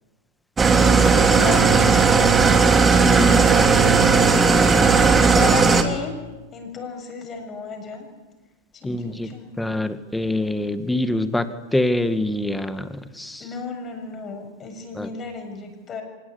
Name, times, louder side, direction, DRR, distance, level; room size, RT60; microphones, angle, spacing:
Engine starting / Idling, 0.6-5.8, right 5 dB, 15° right, 3.1 m, -16 dB
voice 1, 1.0-2.3 3.2-4.8 5.3-6.2 6.5-8.1 8.7-9.5 13.4-16.0, left 4 dB, 25° left, 4 dB, 7.3 m, -33 dB
voice 2, 3.0-3.9 8.8-13.4 15.0-15.1, left 1 dB, 5° left, 10 dB, 2.1 m, -25 dB
25.0 x 20.5 x 9.9 m, 1.2 s
hypercardioid pair, 100°, 0 cm